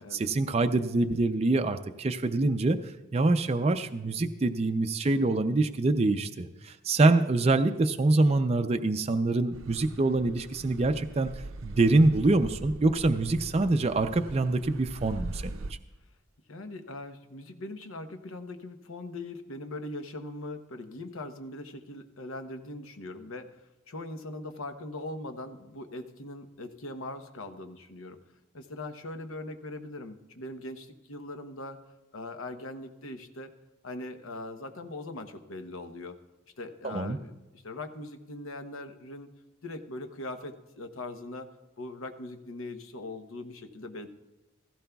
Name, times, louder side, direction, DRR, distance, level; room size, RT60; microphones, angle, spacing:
voice 1, 0.1-2.8 3.1-11.3 11.6-15.5 36.8-37.2, right 2 dB, 30° right, 7 dB, 0.4 m, -25 dB
Car passing by / Accelerating revving vroom, 9.5-15.7, right 2 dB, 75° right, 0.6 m, -42 dB
voice 2, 16.5-23.5 23.9-28.2 28.5-31.8 32.1-33.5 33.8-36.2 36.6-39.3 39.6-41.5 41.8-44.1, left 2 dB, 80° left, 7 dB, 0.9 m, -41 dB
16.0 x 15.5 x 2.3 m, 1.1 s
head